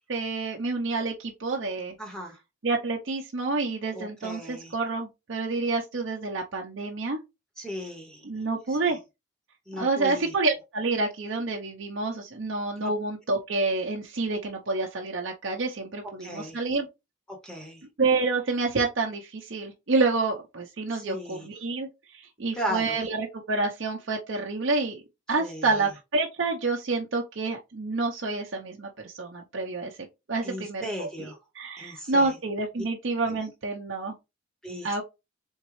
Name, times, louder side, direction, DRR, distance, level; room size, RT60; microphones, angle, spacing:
voice 1, 0.1-1.9 2.6-7.2 8.2-9.0 9.8-16.9 18.0-21.9 22.1-25.0 25.3-29.9 30.3-34.1 34.8-35.0, right 3 dB, 55° right, 0.6 m, -28 dB
voice 2, 2.0-2.4 3.8-4.7 7.6-8.3 8.7-9.0 9.7-10.3 12.8-12.9 16.2-16.6 17.3-17.8 20.9-21.5 22.5-22.9 25.4-25.8 30.4-31.4 31.8-32.4 33.3-33.4 34.6-35.0, equal, 5° left, 0.7 m, -36 dB
4.0 x 3.6 x 3.1 m
head